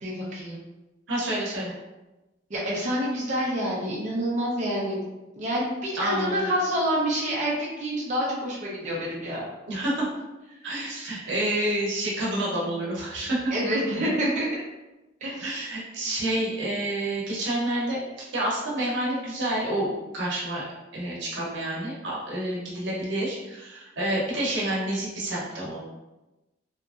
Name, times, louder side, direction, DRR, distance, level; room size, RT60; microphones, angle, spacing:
voice 1, 0.0-0.6 2.5-5.0 5.4-9.5 13.5-14.5 15.2-15.7, equal, 40° right, -5 dB, 0.6 m, -27 dB
voice 2, 1.1-1.7 5.9-6.5 9.7-10.1 10.6-13.5 15.4-18.0 18.3-20.6 20.9-25.8, right 1 dB, 85° right, -5 dB, 0.8 m, -28 dB
2.8 x 2.5 x 2.4 m, 1.0 s
head